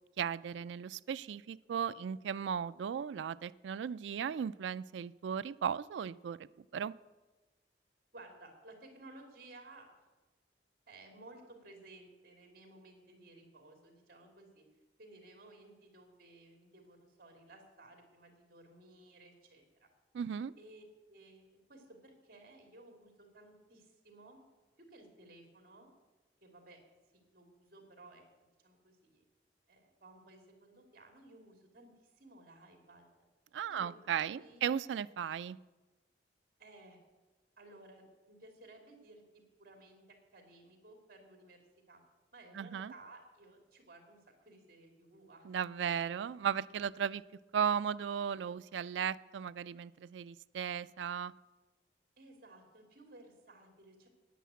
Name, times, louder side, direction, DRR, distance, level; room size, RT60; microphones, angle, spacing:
voice 1, 0.2-6.9 20.1-20.5 33.5-35.6 42.5-42.9 45.4-47.2 47.5-51.3, right 8 dB, 90° right, 15 dB, 0.3 m, -36 dB
voice 2, 8.1-9.9 10.9-14.6 15.0-19.9 20.6-24.4 24.8-25.9 26.4-26.8 27.1-28.2 28.6-29.2 29.7-33.1 33.7-34.0 34.3-34.6 36.6-37.0 37.6-42.0 42.3-45.5 52.2-54.1, right 2 dB, 55° right, 4 dB, 2.7 m, -57 dB
10.0 x 9.3 x 8.3 m, 1.2 s
head